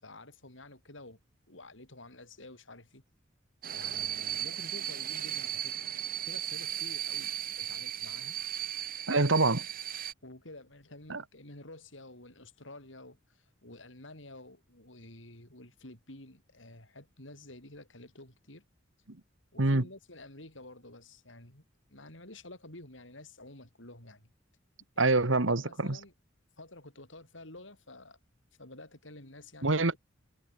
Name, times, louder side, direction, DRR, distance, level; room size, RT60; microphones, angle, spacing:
voice 1, 0.0-1.2 1.5-3.0 3.7-5.8 6.2-8.4 10.2-18.6 19.5-24.3 24.9-25.1 25.5-26.1 26.6-28.2 28.6-29.9, left 2 dB, 70° left, 7.8 m, -50 dB
sound 1, 3.6-10.1, right 11 dB, 50° right, 5.4 m, -36 dB
voice 2, 9.1-9.7 11.1-11.2 19.1-19.2 19.6-19.9 25.0-26.0 29.6-29.9, right 2 dB, 75° right, 1.8 m, -26 dB
head